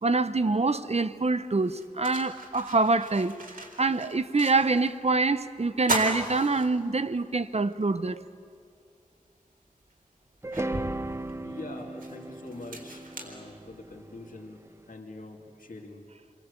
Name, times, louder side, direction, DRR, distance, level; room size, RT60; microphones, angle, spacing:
voice 1, 0.0-3.4 3.8-8.2, right 3 dB, 50° right, 0.9 m, -25 dB
sound 1, 1.6-5.0 5.3-5.4 5.8-7.3 7.7-7.8 9.2-9.3 9.9-14.1, right 1 dB, 85° right, 3.8 m, -37 dB
sound 2, 10.4-14.6, right 2 dB, 20° right, 0.7 m, -36 dB
voice 2, 11.4-16.0, left 2 dB, 75° left, 2.6 m, -44 dB
29.0 x 22.5 x 8.3 m
wide cardioid pair, 60°, 14 cm